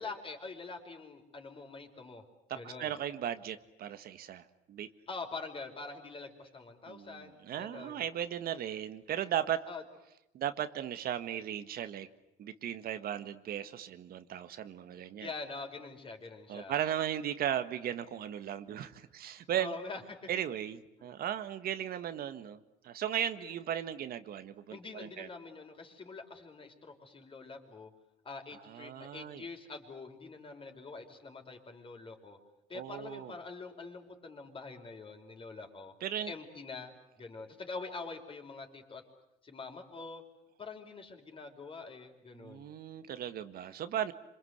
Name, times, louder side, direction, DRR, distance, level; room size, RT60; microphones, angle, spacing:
voice 1, 0.0-2.2 2.5-3.0 5.1-8.0 9.7-9.8 15.2-16.8 19.5-20.3 21.0-21.1 23.4-23.5 24.7-27.9 28.2-32.4 32.7-35.9 36.3-39.1 39.4-40.2 40.6-42.7, left 4 dB, 30° left, 4 dB, 5.1 m, -45 dB
voice 2, 2.5-4.9 6.9-9.6 10.3-12.1 12.4-15.3 16.5-19.7 20.3-25.3 28.5-29.4 32.7-33.3 36.0-36.3 42.3-44.1, right 10 dB, 60° right, 10 dB, 1.6 m, -36 dB
27.0 x 26.5 x 8.1 m, 0.83 s
cardioid pair, 110°, 17 cm